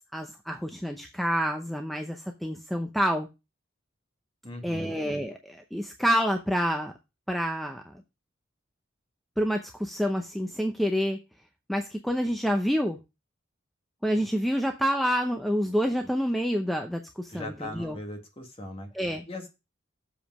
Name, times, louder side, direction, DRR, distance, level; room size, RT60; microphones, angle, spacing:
voice 1, 0.1-3.3 4.6-6.9 7.3-7.8 9.4-11.2 11.7-13.0 14.0-18.0 18.9-19.2, equal, ahead, 4 dB, 0.6 m, -28 dB
voice 2, 4.4-5.0 17.3-18.9 19.3-19.5, left 1 dB, 30° left, 4 dB, 1.7 m, -39 dB
7.3 x 5.0 x 6.0 m, 0.26 s
head